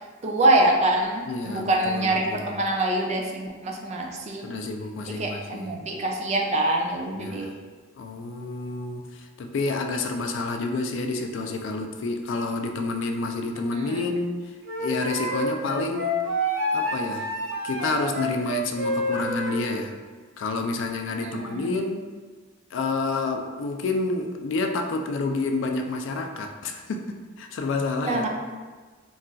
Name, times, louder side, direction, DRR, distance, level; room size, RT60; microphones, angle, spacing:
voice 1, 0.2-4.7 5.1-7.5 13.7-14.0 21.2-21.7 28.0-28.3, right 2 dB, 35° right, 1 dB, 0.3 m, -25 dB
voice 2, 1.3-2.6 4.4-5.8 7.1-7.6 8.0-14.4 14.8-16.2 16.7-17.3 17.6-19.9 20.4-22.1 22.7-28.3, left 3 dB, 65° left, 4 dB, 0.3 m, -29 dB
Wind instrument woodwind instrument, 14.6-19.7, equal, 85° right, 0.6 m, -28 dB
2.3 x 2.3 x 3.8 m, 1.4 s
head